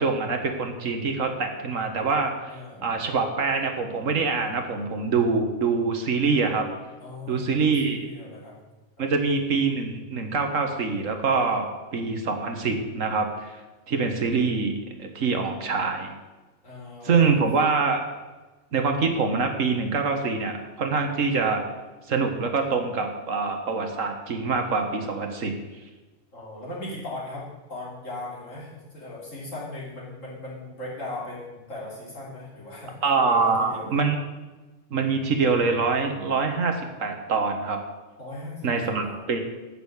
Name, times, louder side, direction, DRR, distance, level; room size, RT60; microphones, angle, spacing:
voice 1, 0.0-6.7 7.3-8.0 9.0-13.5 13.9-16.2 17.0-18.0 18.7-21.6 22.1-25.6 33.0-34.2 34.9-37.8 38.6-39.4, right 4 dB, 80° right, 5 dB, 1.7 m, -25 dB
voice 2, 2.5-3.0 7.0-8.5 9.0-9.1 16.6-17.4 26.3-33.0 33.2-34.0 38.2-39.3, left 2 dB, 80° left, -6 dB, 3.9 m, -38 dB
8.9 x 6.5 x 8.3 m, 1.2 s
omnidirectional pair, 1.3 m